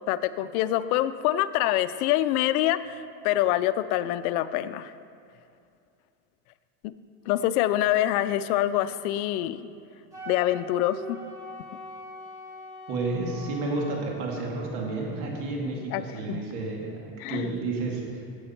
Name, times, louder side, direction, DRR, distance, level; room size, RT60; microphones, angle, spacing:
voice 1, 0.1-4.9 6.8-6.9 7.3-9.6 10.3-11.2 15.9-16.4 17.2-17.5, left 13 dB, 75° left, 13 dB, 0.6 m, -25 dB
Wind instrument woodwind instrument, 10.1-14.0, equal, 10° right, 2.5 m, -42 dB
voice 2, 12.9-18.4, right 3 dB, 75° right, -1 dB, 2.4 m, -31 dB
12.0 x 8.1 x 4.4 m, 2.4 s
supercardioid pair, 130°, 44 cm